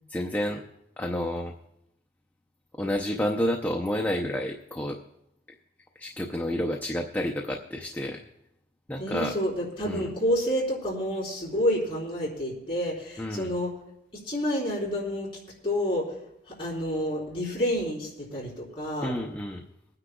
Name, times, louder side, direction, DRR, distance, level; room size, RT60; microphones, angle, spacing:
voice 1, 0.1-0.6 1.0-1.5 2.8-5.0 6.0-8.2 8.9-9.3 9.8-10.1 13.2-13.5 19.0-19.6, left 1 dB, 10° left, 0 dB, 0.5 m, -30 dB
voice 2, 9.0-13.7 14.1-15.3 15.6-16.1 16.5-19.1, equal, 30° left, -6 dB, 3.8 m, -29 dB
25.0 x 9.7 x 2.3 m, 0.81 s
head